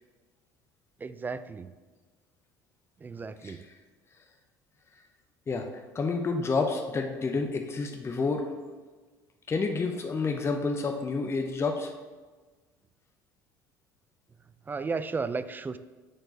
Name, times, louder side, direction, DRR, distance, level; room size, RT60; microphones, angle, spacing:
voice 1, 1.0-1.7 3.0-3.6 14.7-15.8, right 4 dB, 20° right, 13 dB, 0.3 m, -34 dB
voice 2, 5.5-8.5 9.5-11.9, left 4 dB, 30° left, 4 dB, 0.7 m, -29 dB
6.5 x 4.4 x 4.4 m, 1.3 s
hypercardioid pair, 65°, 9 cm